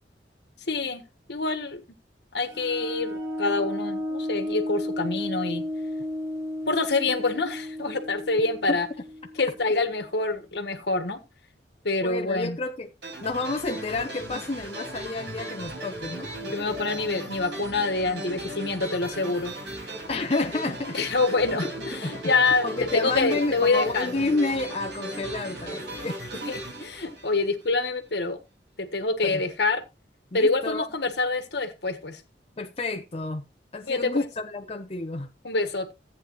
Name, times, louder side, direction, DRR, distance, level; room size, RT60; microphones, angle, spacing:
voice 1, 0.7-1.0 1.3-1.8 2.3-5.6 6.7-8.9 9.4-11.2 11.8-12.6 16.4-19.5 20.9-22.6 22.9-24.2 26.5-28.4 28.8-29.8 30.3-32.2 33.9-34.1 35.4-35.9, left 3 dB, 70° left, 1.5 m, -26 dB
sound 1, 2.5-9.9, left 1 dB, 15° right, 4.0 m, -33 dB
voice 2, 12.0-12.9 13.2-16.3 20.1-21.0 22.0-22.1 22.6-26.5 29.2-29.4 30.3-30.9 32.6-33.5 33.7-35.3, left 2 dB, 35° left, 0.8 m, -30 dB
sound 2, 13.0-27.9, right 1 dB, 75° right, 5.0 m, -37 dB
14.0 x 8.5 x 3.1 m
head